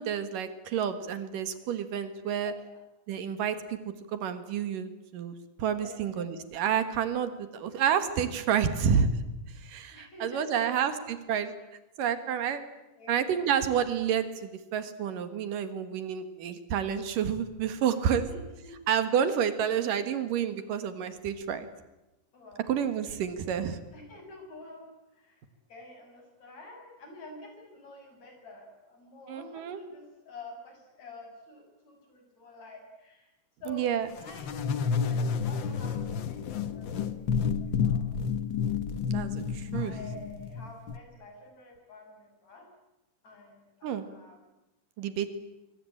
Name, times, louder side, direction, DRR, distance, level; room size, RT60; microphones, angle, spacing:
voice 1, 0.0-2.5 3.1-9.1 9.6-11.5 12.0-12.6 13.1-18.3 18.9-21.7 22.7-23.8 29.3-29.8 33.7-34.1 39.1-39.9 43.8-44.1 45.0-45.4, right 8 dB, 75° right, 10 dB, 3.1 m, -29 dB
voice 2, 5.7-6.2 9.9-10.9 13.0-13.2 18.1-18.4 18.6-18.8 19.5-20.0 22.3-22.7 23.9-25.4 25.7-33.3 33.6-34.6 35.1-38.1 39.7-42.7 43.2-44.4, left 2 dB, 50° left, 3 dB, 7.8 m, -48 dB
sound 1, 34.2-41.0, left 6 dB, 85° left, 1.0 m, -30 dB
25.0 x 24.0 x 8.8 m, 1.0 s
omnidirectional pair, 4.0 m